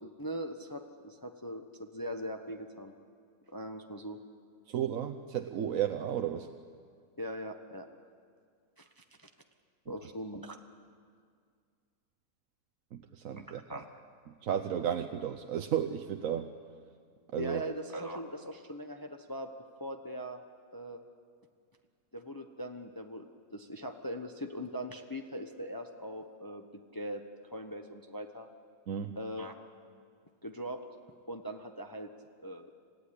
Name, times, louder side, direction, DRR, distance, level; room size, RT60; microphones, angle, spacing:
voice 1, 0.0-2.9 3.5-4.2 7.2-7.9 8.8-9.3 9.9-10.6 13.4-13.9 17.4-19.5 19.8-20.4 20.7-21.0 22.1-23.3 23.5-26.6 26.9-27.2 27.5-28.5 29.2-29.5 30.4-30.8 31.3-32.1 32.4-32.7, equal, 15° left, 5 dB, 0.9 m, -40 dB
voice 2, 4.7-6.5 12.9-13.6 14.4-16.5 17.3-17.6 28.9-29.2, right 9 dB, 65° right, 6 dB, 1.2 m, -33 dB
27.0 x 15.5 x 10.0 m, 2.1 s
omnidirectional pair, 1.6 m